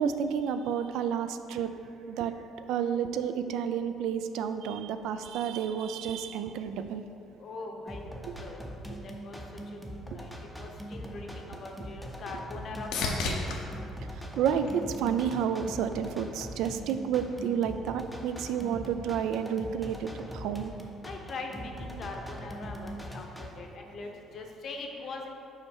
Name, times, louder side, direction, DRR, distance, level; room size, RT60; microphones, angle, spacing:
voice 1, 0.0-1.7 2.1-2.3 2.7-7.0 14.4-20.7, right 8 dB, 90° right, 9 dB, 0.4 m, -30 dB
voice 2, 7.4-8.6 9.0-9.4 10.1-10.3 10.6-13.5 21.0-25.3, left 3 dB, 40° left, 2 dB, 0.7 m, -41 dB
sound 1, 7.9-23.5, equal, ahead, 0.5 m, -42 dB
sound 2, 11.8-15.4 15.9-16.5 24.3-24.4, left 3 dB, 80° left, 0.9 m, -37 dB
5.6 x 4.6 x 6.2 m, 2.7 s
cardioid pair, 180°, 0 cm